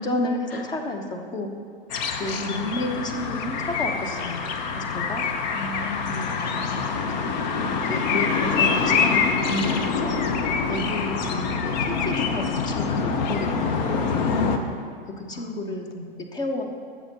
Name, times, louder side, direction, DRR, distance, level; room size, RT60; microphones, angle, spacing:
voice 1, 0.0-1.5 2.2-4.4 4.7-5.3 6.1-6.4 7.0-7.3 7.9-10.2 10.7-14.4 15.2-15.9 16.3-16.6, left 1 dB, 15° left, 4 dB, 0.8 m, -31 dB
sound 1, 1.9-14.6, left 5 dB, 50° left, 0.8 m, -25 dB
voice 2, 2.4-2.7 5.5-6.3 15.3-16.3, left 2 dB, 75° left, 5 dB, 1.0 m, -37 dB
13.0 x 7.2 x 2.9 m, 2.1 s
figure-of-eight pair, 100°, 30 cm